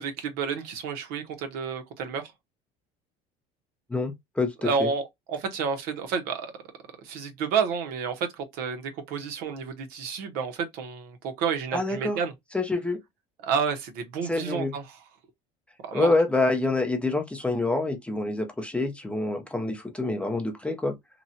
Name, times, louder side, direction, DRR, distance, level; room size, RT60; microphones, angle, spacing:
voice 1, 0.0-2.2 4.6-6.5 7.0-12.3 13.4-15.0 15.8-16.1 16.4-16.5, right 6 dB, 70° right, 1.0 m, -30 dB
voice 2, 3.9-4.9 11.7-12.2 12.5-13.0 14.3-14.7 15.9-20.9, left 2 dB, 5° left, 0.5 m, -26 dB
3.0 x 2.3 x 2.7 m
cardioid pair, 140°, 16 cm